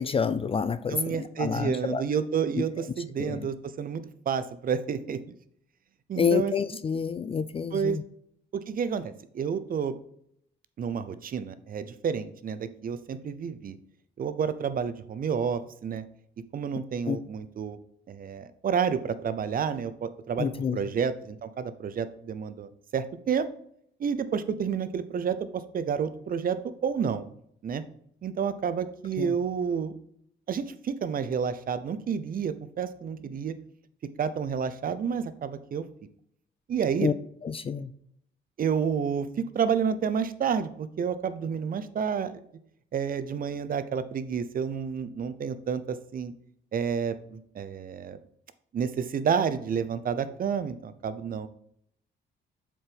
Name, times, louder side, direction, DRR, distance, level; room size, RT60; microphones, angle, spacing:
voice 1, 0.0-2.0 2.6-2.7 3.2-3.5 6.2-8.0 17.1-17.2 20.4-20.8 29.2-29.4 37.0-37.1 37.4-37.9, left 6 dB, 30° left, 13 dB, 0.3 m, -28 dB
voice 2, 0.9-5.3 6.1-6.5 7.7-8.0 8.5-10.0 10.8-13.8 14.2-16.0 16.5-17.8 18.1-23.5 24.0-27.2 27.6-27.8 28.2-29.9 30.5-33.5 34.2-35.8 36.7-37.1 38.6-39.3 39.5-42.4 42.9-46.3 46.7-48.2 48.7-51.5, right 7 dB, 45° right, 12 dB, 0.6 m, -30 dB
7.3 x 4.5 x 3.4 m, 0.69 s
cardioid pair, 90°, 20 cm